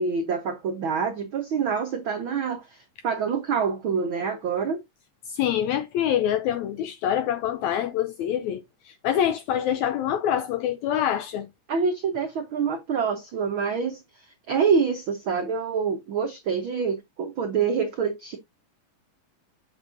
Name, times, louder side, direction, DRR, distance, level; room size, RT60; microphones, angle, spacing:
voice 1, 0.0-4.8 11.7-18.4, right 6 dB, 90° right, 1.1 m, -26 dB
voice 2, 5.3-8.6 8.9-11.5, left 10 dB, 85° left, 1.6 m, -25 dB
7.4 x 7.2 x 2.6 m
omnidirectional pair, 3.8 m